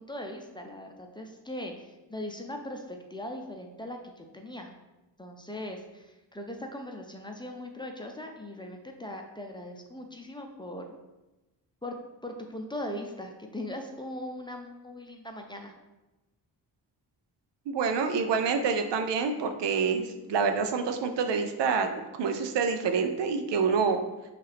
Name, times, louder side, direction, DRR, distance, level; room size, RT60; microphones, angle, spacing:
voice 1, 0.0-4.7 5.2-10.9 11.8-12.0 12.2-15.7, left 1 dB, 10° left, 2 dB, 0.5 m, -39 dB
voice 2, 17.7-21.9 22.2-24.0, right 5 dB, 75° right, 6 dB, 0.6 m, -27 dB
5.3 x 2.5 x 3.4 m, 1.0 s
cardioid pair, 65°, 42 cm